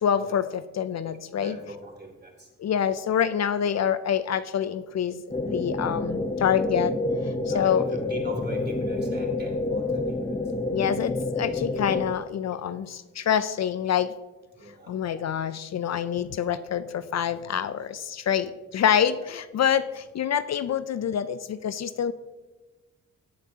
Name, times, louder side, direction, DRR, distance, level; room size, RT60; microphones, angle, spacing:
voice 1, 0.0-1.6 2.6-6.9 7.2-8.0 10.7-14.1 14.9-22.1, left 8 dB, 60° left, 13 dB, 0.5 m, -26 dB
voice 2, 1.4-2.5 5.7-5.8 7.5-10.4 14.6-15.4 16.0-16.1 19.1-19.2, right 1 dB, 35° right, 2 dB, 3.0 m, -41 dB
sound 1, 5.3-12.1, left 2 dB, 20° left, 0.8 m, -28 dB
16.5 x 7.9 x 2.8 m, 1.2 s
cardioid pair, 70°, 31 cm